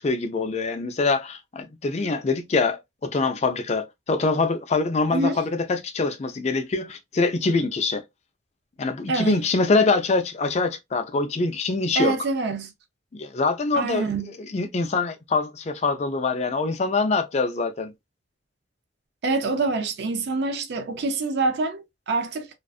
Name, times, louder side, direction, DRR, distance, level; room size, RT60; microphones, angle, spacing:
voice 1, 0.0-8.0 8.8-12.1 13.1-14.1 14.5-17.9, left 3 dB, 35° left, 0.4 m, -24 dB
voice 2, 9.1-9.4 12.0-12.7 13.7-14.3 19.2-22.5, right 3 dB, 60° right, 0.4 m, -26 dB
2.4 x 2.3 x 2.3 m
head